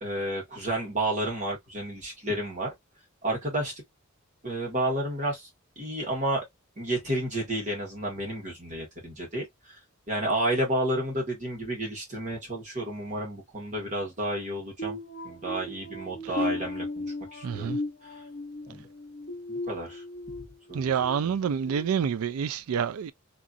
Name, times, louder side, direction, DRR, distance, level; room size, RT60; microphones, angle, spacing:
voice 1, 0.0-2.7 3.2-3.7 4.4-5.5 5.8-6.4 6.8-9.8 10.1-15.0 15.2-17.1 17.3-17.8 18.1-18.2 18.7-18.9 19.5-20.0 20.7-21.4, right 1 dB, 35° right, 1.6 m, -31 dB
sound 1, 14.8-20.4 20.9-21.2 21.7-21.9, left 1 dB, 45° left, 0.9 m, -36 dB
voice 2, 17.4-17.8 20.7-23.1, right 7 dB, 85° right, 0.4 m, -28 dB
2.9 x 2.7 x 2.4 m
head